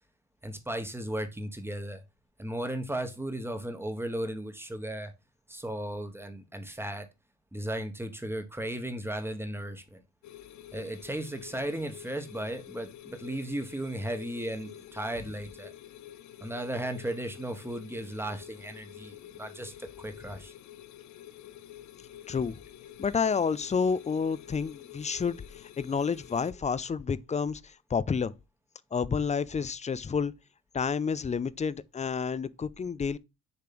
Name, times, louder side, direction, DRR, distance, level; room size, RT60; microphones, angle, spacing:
voice 1, 0.4-2.0 2.4-5.1 5.5-7.1 7.5-10.0 10.7-15.7 16.4-20.5, right 1 dB, 10° right, 1.4 m, -35 dB
sound 1, 10.2-26.5, left 12 dB, 70° left, 0.7 m, -49 dB
voice 2, 22.3-22.6 23.0-25.4 25.8-28.3 28.9-30.3 30.7-33.2, left 6 dB, 25° left, 0.4 m, -29 dB
6.9 x 3.3 x 5.9 m
cardioid pair, 90°, 30 cm